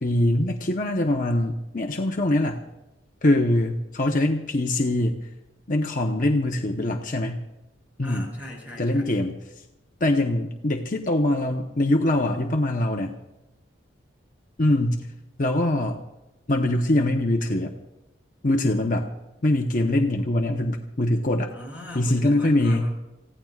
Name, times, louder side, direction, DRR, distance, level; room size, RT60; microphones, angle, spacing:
voice 1, 0.0-2.6 3.2-5.3 5.7-7.4 8.0-8.3 8.8-9.4 10.0-13.1 14.6-15.1 15.4-16.0 16.5-17.7 18.4-19.1 19.4-21.5 21.9-22.9, left 1 dB, 45° left, 2 dB, 1.0 m, -23 dB
voice 2, 8.0-9.1 21.5-22.9, left 1 dB, 10° right, -3 dB, 7.0 m, -39 dB
28.5 x 16.5 x 2.4 m, 0.98 s
head